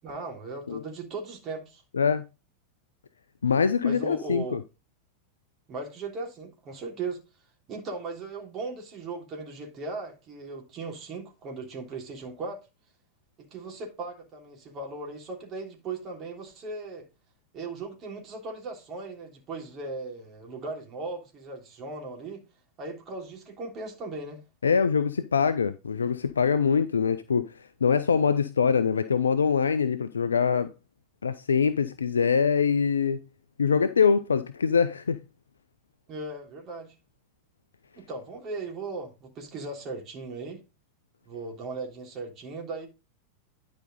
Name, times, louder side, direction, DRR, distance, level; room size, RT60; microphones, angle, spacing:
voice 1, 0.0-1.8 3.8-4.6 5.7-7.2 7.7-12.6 13.4-17.0 17.5-22.4 22.8-24.4 36.1-36.9 38.0-40.6 41.2-42.9, right 3 dB, 30° right, 3.2 m, -37 dB
voice 2, 3.4-4.6 24.6-27.5 27.8-30.7 31.2-33.2 33.6-35.2, left 6 dB, 70° left, 0.5 m, -24 dB
10.5 x 5.2 x 4.0 m
figure-of-eight pair, 90°, 0 cm